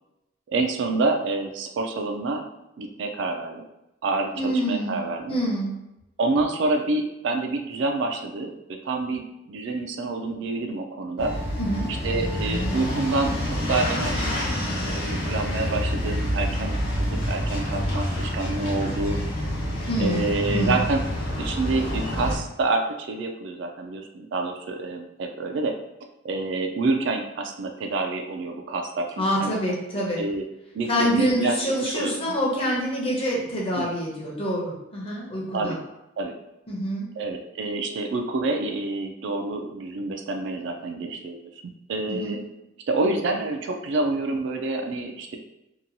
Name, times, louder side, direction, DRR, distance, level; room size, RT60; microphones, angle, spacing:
voice 1, 0.5-2.4 2.8-3.7 4.0-5.4 6.2-9.2 9.5-11.3 11.9-14.4 14.8-19.2 20.0-21.0 21.4-25.7 26.2-29.5 30.2-30.4 30.7-31.6 31.9-32.1 33.8-33.9 35.5-35.8 36.2-36.3 37.2-41.4 41.9-42.4 42.9-45.4, right 3 dB, 60° right, 4 dB, 0.3 m, -27 dB
voice 2, 4.3-5.0 5.3-5.8 11.6-11.9 19.9-20.8 29.2-30.2 30.9-35.8 36.7-37.1 42.1-42.4, equal, 30° left, -3 dB, 0.7 m, -26 dB
sound 1, 11.2-22.4, left 1 dB, 85° left, 1.1 m, -27 dB
2.8 x 2.2 x 2.6 m, 0.91 s
head